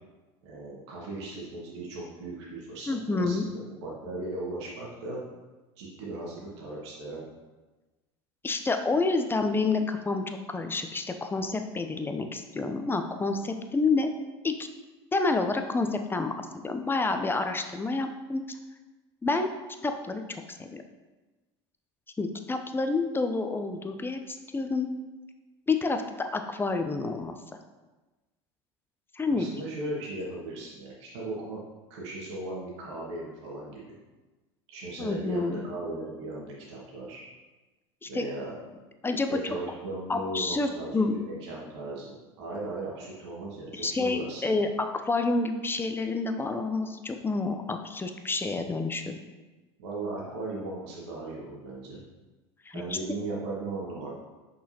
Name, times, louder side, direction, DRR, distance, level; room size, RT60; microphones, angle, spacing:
voice 1, 0.4-5.2 5.8-7.2 29.3-31.6 31.9-33.9 34.7-37.2 38.1-38.5 39.3-44.7 49.8-52.0 52.7-54.1, right 2 dB, 70° right, -4 dB, 1.7 m, -37 dB
voice 2, 2.9-3.4 8.4-14.1 14.4-14.7 15.1-16.3 16.6-18.6 19.2-19.5 19.8-20.2 20.5-20.8 22.2-24.9 25.7-27.4 29.1-29.5 35.0-35.6 38.0-38.3 39.0-39.3 40.1-41.2 43.7-49.2 52.7-53.0, left 3 dB, 15° left, 6 dB, 0.6 m, -28 dB
6.3 x 5.6 x 2.9 m, 1.2 s
hypercardioid pair, 80°, 15 cm